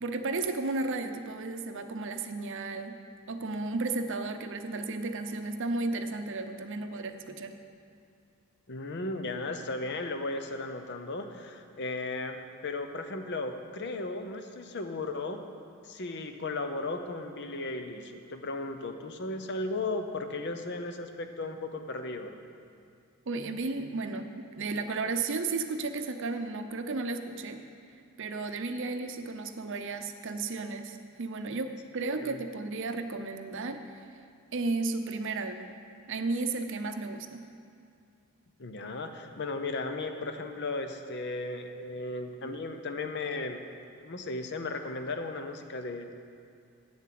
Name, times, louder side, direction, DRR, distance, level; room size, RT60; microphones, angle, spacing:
voice 1, 0.0-3.0 3.3-7.6 23.3-27.6 28.2-33.9 34.5-35.8 36.1-37.5, right 3 dB, 60° right, 8 dB, 0.6 m, -33 dB
voice 2, 8.7-15.4 15.8-22.3 32.0-32.4 38.6-43.6 44.0-46.1, left 2 dB, 55° left, 7 dB, 0.7 m, -36 dB
8.8 x 7.4 x 7.6 m, 2.4 s
head